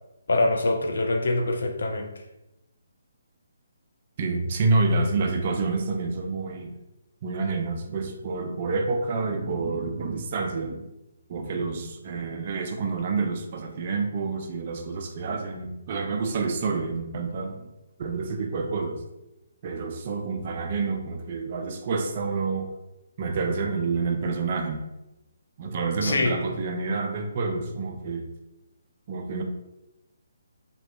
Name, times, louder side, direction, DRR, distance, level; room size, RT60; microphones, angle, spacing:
voice 1, 0.3-2.1 26.0-26.4, left 2 dB, 60° left, 4 dB, 0.3 m, -24 dB
voice 2, 4.2-6.7 7.2-10.9 11.3-17.7 18.0-19.0 19.6-22.7 23.2-24.8 25.6-28.3 29.1-29.4, right 3 dB, 40° right, 4 dB, 0.3 m, -28 dB
2.7 x 2.1 x 2.2 m, 0.94 s
figure-of-eight pair, 140°, 0 cm